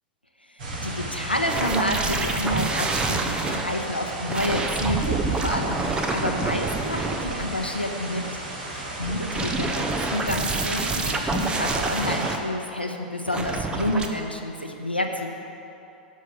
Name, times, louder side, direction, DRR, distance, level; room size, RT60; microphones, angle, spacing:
voice 1, 0.4-8.3 8.7-15.3, left 1 dB, 90° left, 2 dB, 1.2 m, -29 dB
sound 1, 0.6-12.3, right 1 dB, 60° right, 2.8 m, -35 dB
sound 2, 1.5-3.6 4.3-7.7 9.0-12.4 13.3-14.1, right 3 dB, 15° right, 0.9 m, -27 dB
12.5 x 6.4 x 8.5 m, 2.8 s
figure-of-eight pair, 95°, 5 cm